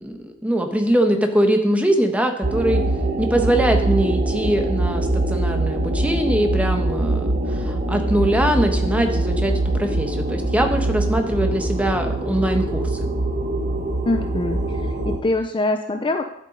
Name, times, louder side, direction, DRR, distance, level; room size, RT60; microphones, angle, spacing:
voice 1, 0.0-2.8 3.2-12.9, right 1 dB, 5° right, 4 dB, 1.3 m, -22 dB
sound 1, 2.4-15.2, right 2 dB, 45° right, 1.7 m, -23 dB
voice 2, 14.1-16.2, left 2 dB, 25° left, 7 dB, 0.6 m, -24 dB
10.5 x 8.2 x 5.2 m, 0.80 s
head